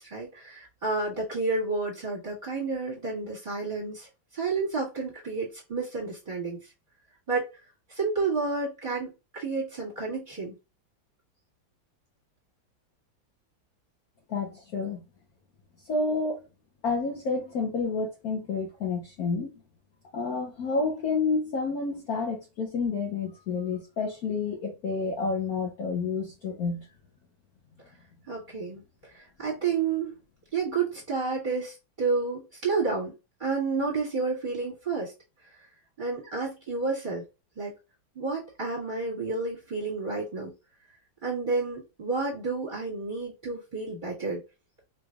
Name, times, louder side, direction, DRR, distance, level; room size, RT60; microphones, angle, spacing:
voice 1, 0.0-4.1 4.3-6.6 7.3-7.5 7.9-10.6 28.3-28.8 29.1-30.1 30.5-33.1 33.4-35.1 36.0-37.2 37.6-37.7 38.2-40.5 41.2-44.4, right 4 dB, 25° right, 1.7 m, -30 dB
voice 2, 14.3-15.0 15.9-16.4 16.8-19.5 20.1-26.9, left 4 dB, 60° left, 1.0 m, -29 dB
4.2 x 3.3 x 2.3 m
omnidirectional pair, 2.1 m